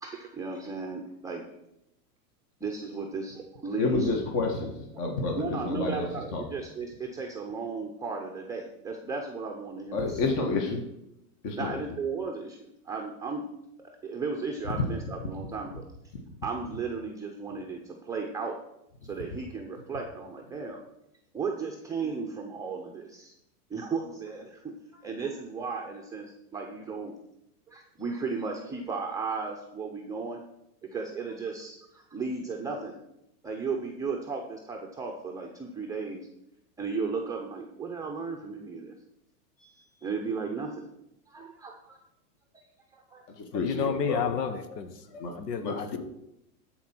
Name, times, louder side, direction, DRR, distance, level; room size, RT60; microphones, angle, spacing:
voice 1, 0.0-1.4 2.6-4.1 5.0-10.3 11.5-13.4 14.0-15.8 16.4-18.5 19.0-20.8 21.3-23.3 23.7-27.1 27.7-30.4 30.8-33.0 33.4-36.3 36.8-38.9 39.6-40.8 41.3-42.0 42.5-42.6 42.9-43.3 45.1-45.2, right 4 dB, 5° right, 0 dB, 0.6 m, -35 dB
voice 2, 3.8-6.1 6.3-6.4 9.9-10.8 11.4-11.8 43.4-44.5 45.2-45.3 45.6-46.0, left 3 dB, 40° left, 2 dB, 1.5 m, -29 dB
voice 3, 43.5-46.0, left 7 dB, 90° left, 10 dB, 1.2 m, -32 dB
13.0 x 4.4 x 6.0 m, 0.85 s
hypercardioid pair, 130°, 47 cm